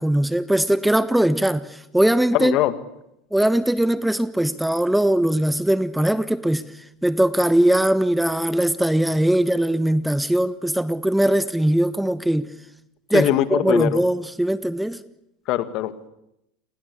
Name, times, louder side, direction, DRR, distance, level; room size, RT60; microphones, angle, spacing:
voice 1, 0.0-2.6 3.3-6.6 7.0-12.5 13.1-15.0, right 1 dB, 5° right, 1.2 m, -20 dB
voice 2, 2.3-2.7 13.1-14.0 15.5-16.1, left 13 dB, 55° left, 2.2 m, -22 dB
29.0 x 21.5 x 8.6 m
hypercardioid pair, 100°, 0 cm